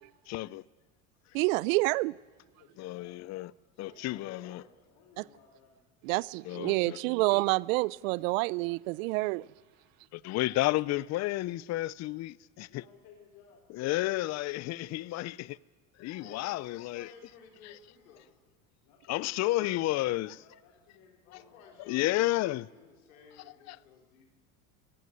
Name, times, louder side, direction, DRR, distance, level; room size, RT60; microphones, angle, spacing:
voice 1, 0.3-0.6 2.8-3.5 3.8-4.6 6.4-7.0 10.1-12.8 13.7-15.6 16.0-17.1 19.1-20.4 21.9-22.6 23.7-23.8, left 17 dB, 40° left, 0.6 m, -31 dB
voice 2, 1.3-2.1 6.1-9.5, right 23 dB, 75° right, 0.5 m, -28 dB
voice 3, 2.6-3.2 3.9-5.9 12.7-14.2 18.8-20.0 20.3-21.8, left 6 dB, 55° left, 3.5 m, -60 dB
voice 4, 3.7-4.8 10.0-10.4 14.6-15.2 16.2-18.4 21.2-24.3, left 6 dB, 90° left, 4.7 m, -56 dB
18.0 x 15.5 x 9.7 m
supercardioid pair, 100°, 41 cm